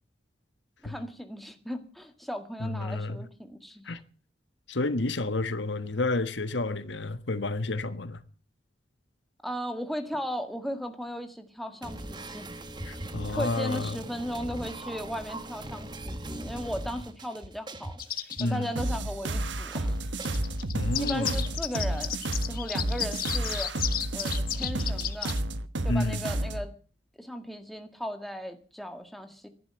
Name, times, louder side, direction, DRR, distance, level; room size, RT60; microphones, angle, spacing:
voice 1, 0.8-3.9 9.4-12.5 13.3-18.0 18.4-20.0 21.0-23.7 24.1-25.4 25.8-26.7 27.2-29.5, equal, ahead, 1.9 m, -36 dB
voice 2, 2.6-3.2 3.8-4.0 4.7-8.2 12.9-14.0 18.4-18.7 20.7-21.4 25.9-26.2, left 2 dB, 75° left, 1.4 m, -30 dB
sound 1, 11.8-21.8, right 1 dB, 25° right, 1.6 m, -41 dB
sound 2, 18.0-18.5 20.2-25.4, left 10 dB, 50° left, 1.4 m, -33 dB
sound 3, 18.8-26.7, right 1 dB, 75° right, 1.3 m, -31 dB
14.5 x 11.5 x 8.9 m
head